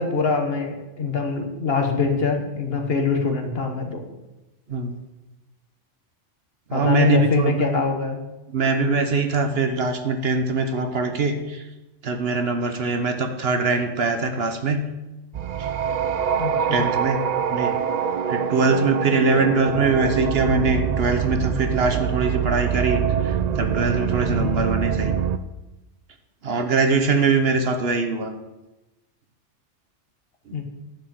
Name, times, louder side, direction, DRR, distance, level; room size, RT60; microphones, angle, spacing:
voice 1, 0.0-4.0 6.7-8.2 16.3-16.8 24.3-24.6 30.5-30.6, left 4 dB, 55° left, 3 dB, 1.4 m, -24 dB
voice 2, 6.7-7.6 8.5-11.7 12.0-14.9 15.6-15.7 16.7-17.8 18.3-25.1 26.4-28.3 30.5-30.6, right 3 dB, 55° right, 7 dB, 1.1 m, -22 dB
sound 1, 15.3-25.4, right 8 dB, 80° right, 0.3 m, -24 dB
10.5 x 4.9 x 7.5 m, 1.0 s
omnidirectional pair, 1.3 m